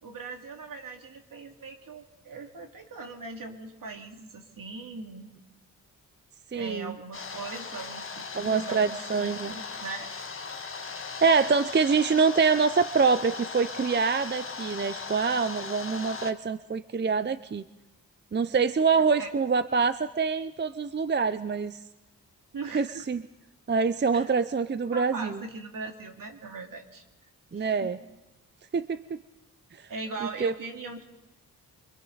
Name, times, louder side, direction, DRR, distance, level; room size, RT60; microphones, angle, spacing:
voice 1, 0.0-5.3 6.5-10.1 19.2-19.3 22.5-23.1 24.1-24.3 24.9-27.0 27.5-27.9 29.9-31.0, right 3 dB, 65° right, 3 dB, 2.7 m, -40 dB
voice 2, 6.5-6.9 8.4-9.5 11.2-17.6 18.3-21.8 22.7-23.2 23.7-25.4 27.5-28.0 28.7-29.0 30.4-30.5, right 5 dB, 30° right, 13 dB, 0.6 m, -25 dB
sound 1, 7.1-16.3, left 5 dB, 35° left, 1.5 m, -38 dB
29.0 x 25.0 x 4.0 m, 1.0 s
cardioid pair, 70°, 36 cm